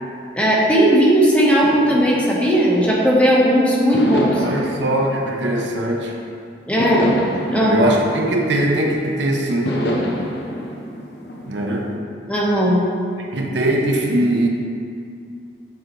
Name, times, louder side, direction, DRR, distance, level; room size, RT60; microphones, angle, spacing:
voice 1, 0.3-4.4 6.7-7.0 7.5-8.0 12.3-12.8, equal, 5° left, -5 dB, 0.9 m, -16 dB
sound 1, 1.6-3.3 3.9-6.2 6.8-9.1 9.6-11.9, equal, 65° left, 0.7 m, -27 dB
voice 2, 4.4-6.1 7.5-9.7 11.5-11.9 13.2-14.5, right 1 dB, 80° right, 1 dB, 0.7 m, -21 dB
8.9 x 3.8 x 3.0 m, 2.4 s
head